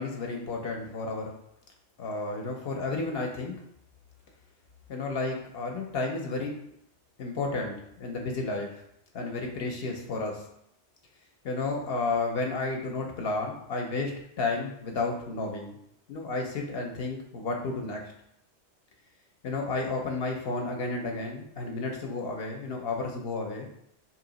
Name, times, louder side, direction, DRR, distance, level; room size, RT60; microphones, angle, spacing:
voice 1, 0.0-1.3 2.0-3.6 4.9-6.5 7.2-8.8 9.1-10.4 11.4-14.1 14.4-15.8 16.1-18.1 19.4-23.7, left 3 dB, 60° left, 1 dB, 0.8 m, -32 dB
3.0 x 2.8 x 3.9 m, 0.75 s
omnidirectional pair, 1.2 m